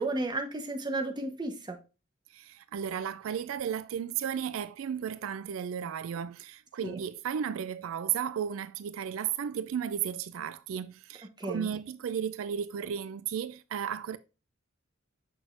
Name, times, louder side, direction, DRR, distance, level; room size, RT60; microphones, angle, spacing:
voice 1, 0.0-1.8 6.8-7.0 11.4-11.7, right 2 dB, 20° right, 0.9 m, -33 dB
voice 2, 2.3-14.2, right 8 dB, 85° right, 0.3 m, -34 dB
6.2 x 6.1 x 2.5 m
head